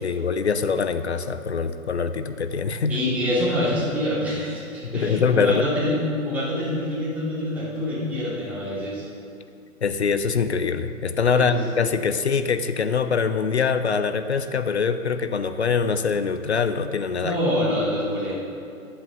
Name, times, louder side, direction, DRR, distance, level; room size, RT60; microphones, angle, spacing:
voice 1, 0.0-3.0 4.8-5.6 9.8-17.4, left 5 dB, 50° left, 10 dB, 0.6 m, -23 dB
voice 2, 2.9-6.0 6.2-9.0 11.2-11.6 17.2-18.3, left 1 dB, 5° right, -10 dB, 2.8 m, -26 dB
21.5 x 7.9 x 3.0 m, 2.7 s
figure-of-eight pair, 130°, 44 cm